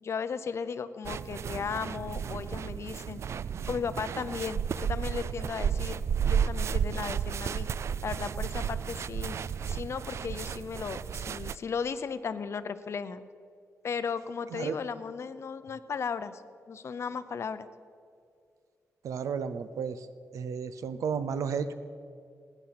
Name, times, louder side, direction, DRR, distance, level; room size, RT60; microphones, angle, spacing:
voice 1, 0.0-3.2 3.7-7.7 8.0-9.4 9.7-13.2 13.8-16.4 16.7-17.7, left 6 dB, 55° left, 12 dB, 0.7 m, -36 dB
sound 1, 1.0-11.6, right 7 dB, 60° right, 0.3 m, -32 dB
voice 2, 19.0-20.1 20.3-21.7, right 6 dB, 90° right, 12 dB, 0.7 m, -33 dB
17.5 x 10.0 x 6.0 m, 2.2 s
cardioid pair, 100°, 5 cm